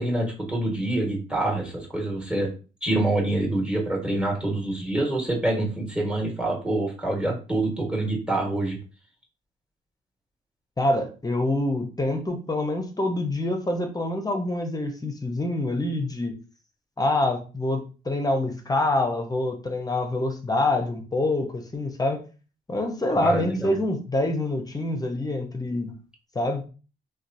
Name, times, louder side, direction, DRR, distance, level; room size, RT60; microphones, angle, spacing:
voice 1, 0.0-2.5 2.8-8.8 23.2-23.7, right 2 dB, 5° right, -2 dB, 1.3 m, -26 dB
voice 2, 10.8-16.3 17.0-22.2 22.7-25.9 26.3-26.7, left 2 dB, 20° left, 4 dB, 0.7 m, -26 dB
2.8 x 2.2 x 2.6 m, 0.35 s
supercardioid pair, 65°, 18 cm